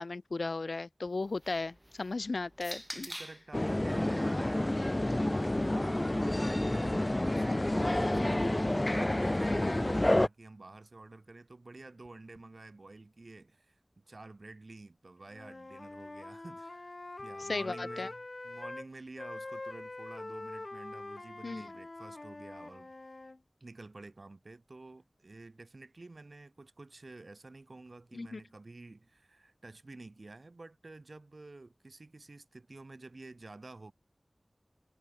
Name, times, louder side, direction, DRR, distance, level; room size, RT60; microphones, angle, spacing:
voice 1, 0.0-3.1 7.3-7.6 9.5-9.8 17.4-18.1 21.4-21.7 28.1-28.4, left 3 dB, 85° left, 0.6 m, -36 dB
sound 1, 1.1-3.5 4.5-6.6, equal, 10° right, 5.3 m, -48 dB
voice 2, 2.9-16.9 17.2-22.9 23.6-33.9, right 2 dB, 65° right, 2.8 m, -50 dB
sound 2, 3.5-10.3, left 1 dB, 30° left, 0.7 m, -29 dB
Wind instrument woodwind instrument, 15.3-18.9 19.2-23.4, left 2 dB, 55° left, 1.2 m, -44 dB
wide cardioid pair, 45°, 0 cm